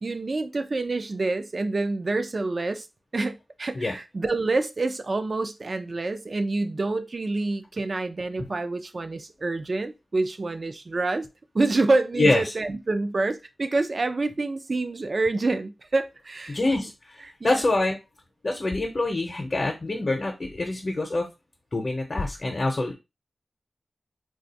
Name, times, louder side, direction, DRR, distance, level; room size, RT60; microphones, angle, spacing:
voice 1, 0.0-2.8 3.1-11.3 11.5-16.6 17.4-17.6, right 3 dB, 55° right, 0.4 m, -27 dB
voice 2, 12.2-12.5 16.5-16.9 17.2-18.0 18.4-21.3 21.7-22.9, left 2 dB, 55° left, 0.7 m, -25 dB
2.4 x 2.3 x 4.0 m
cardioid pair, 50°, 0 cm